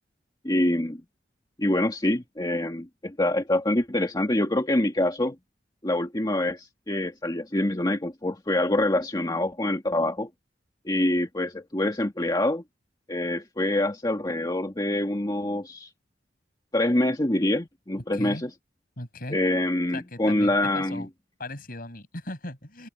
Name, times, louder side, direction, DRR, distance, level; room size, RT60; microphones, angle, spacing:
voice 1, 0.4-1.0 1.6-5.4 5.8-10.3 10.9-12.6 13.1-15.9 16.7-18.5 19.3-21.1, left 1 dB, 25° left, 2.0 m, -25 dB
voice 2, 18.1-18.4 19.0-19.4 19.9-21.1 21.4-22.9, left 1 dB, 55° left, 6.4 m, -38 dB
head